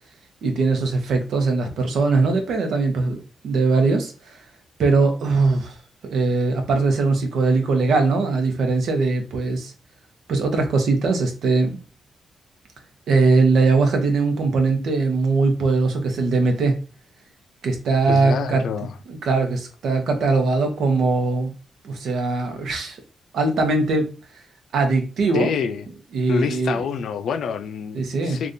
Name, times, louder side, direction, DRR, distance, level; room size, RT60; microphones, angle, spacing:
voice 1, 0.4-4.4 4.8-5.8 6.0-9.7 10.3-11.7 13.1-16.8 17.6-18.6 19.1-21.5 21.8-23.0 23.3-24.1 24.7-25.5 26.1-26.8 27.9-28.4, right 3 dB, 85° right, 0.8 m, -20 dB
voice 2, 18.1-19.0 25.3-25.9 26.3-28.5, left 6 dB, 80° left, 0.3 m, -26 dB
3.5 x 2.4 x 2.6 m
cardioid pair, 100°, 0 cm